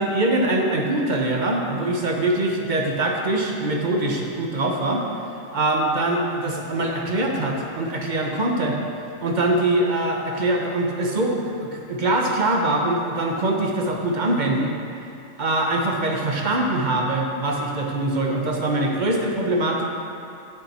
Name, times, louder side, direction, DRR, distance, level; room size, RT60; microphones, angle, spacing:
voice 1, 0.0-5.0 5.5-8.8 9.2-14.7 15.4-19.8, right 2 dB, 40° right, 0 dB, 0.9 m, -23 dB
8.7 x 6.5 x 4.2 m, 2.6 s
omnidirectional pair, 1.4 m